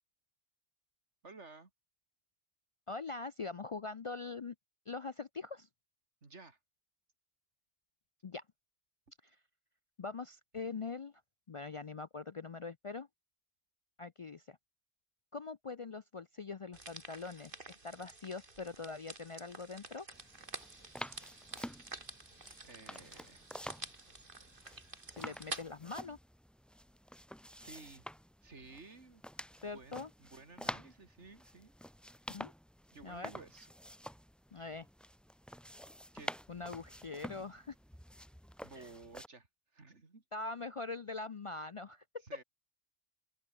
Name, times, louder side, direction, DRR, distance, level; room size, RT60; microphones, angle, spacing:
voice 1, 1.2-1.7 6.2-6.6 22.6-23.5 27.5-28.0 28.4-31.7 32.9-33.7 36.1-36.3 38.6-39.5 39.7-40.2 42.2-42.4, right 3 dB, 90° right, 3.1 m, -54 dB
voice 2, 2.9-4.5 4.9-5.7 8.2-8.4 9.2-9.4 10.0-11.1 11.5-13.1 14.0-14.6 15.3-20.1 25.1-26.2 29.6-30.1 32.3-32.5 33.0-33.3 34.5-34.9 36.5-37.7 38.7-38.9 40.3-42.0, left 4 dB, 45° left, 0.4 m, -43 dB
sound 1, 16.7-25.6, right 3 dB, 50° right, 3.0 m, -49 dB
sound 2, 20.1-39.3, equal, ahead, 1.0 m, -49 dB
open air
omnidirectional pair, 1.2 m